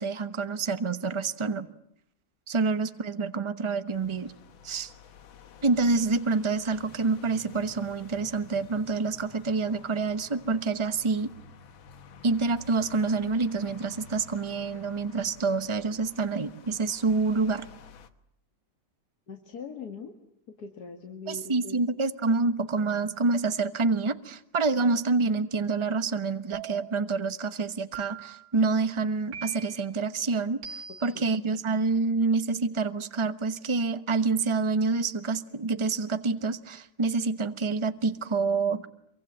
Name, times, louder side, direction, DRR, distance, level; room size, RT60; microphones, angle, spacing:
voice 1, 0.0-1.7 2.5-4.3 4.6-4.9 5.6-11.3 12.2-17.7 21.3-38.9, right 4 dB, 20° right, 11 dB, 0.8 m, -27 dB
sound 1, 3.9-18.1, left 6 dB, 90° left, 2.1 m, -51 dB
voice 2, 19.3-20.1 20.5-21.8 31.1-31.3, left 5 dB, 55° left, 3 dB, 2.3 m, -41 dB
sound 2, 26.5-27.1 27.9-28.5 29.3-29.9 30.6-31.2, right 8 dB, 75° right, 2.2 m, -41 dB
26.5 x 23.5 x 8.8 m, 0.71 s
omnidirectional pair, 2.1 m